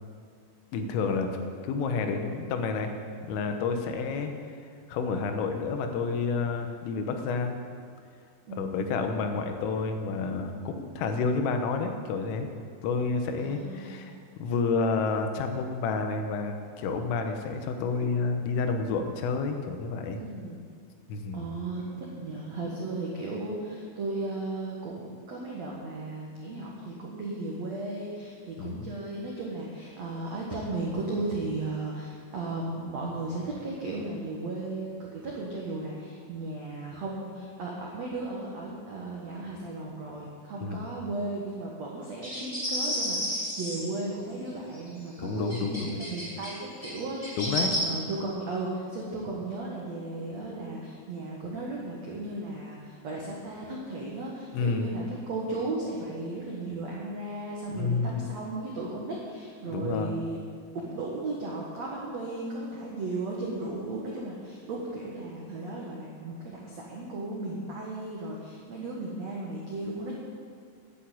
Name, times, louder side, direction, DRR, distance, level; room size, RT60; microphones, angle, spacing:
voice 1, 0.7-1.3 1.6-2.9 3.2-4.3 4.9-7.6 8.5-12.5 12.8-20.2 21.1-21.5 28.6-28.9 40.6-40.9 45.2-46.0 47.4-47.7 54.5-54.9 57.7-58.3 59.7-60.2, left 4 dB, 90° left, 5 dB, 3.7 m, -30 dB
voice 2, 8.5-9.1 13.4-14.1 20.1-20.6 21.3-21.8 22.2-60.4 60.7-70.2, right 2 dB, 80° right, -3 dB, 1.5 m, -35 dB
sound 1, 42.2-43.9 44.7-44.8 45.5-46.5 46.8-47.8, equal, 10° left, 2.7 m, -31 dB
10.0 x 10.0 x 8.5 m, 2.3 s
omnidirectional pair, 5.7 m